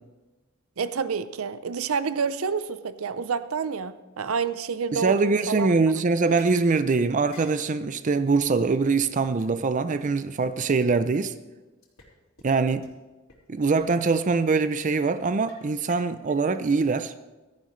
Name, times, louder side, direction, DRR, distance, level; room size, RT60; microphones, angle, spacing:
voice 1, 0.8-5.7, right 5 dB, 80° right, 0.6 m, -28 dB
voice 2, 4.9-11.3 12.4-12.9 13.5-17.1, right 4 dB, 40° right, 0.5 m, -23 dB
sound 1, 6.4-6.7 7.3-7.6 8.3-8.4 8.7-8.8 9.0-9.1 9.4-9.5 9.9-10.0 10.4-10.5 11.8-12.1 12.4-12.5 12.8-12.9 13.3-13.4 13.8-14.0 14.3-14.4 14.9-15.1 15.5-16.4, left 3 dB, 90° left, 3.3 m, -51 dB
16.0 x 13.5 x 3.2 m
head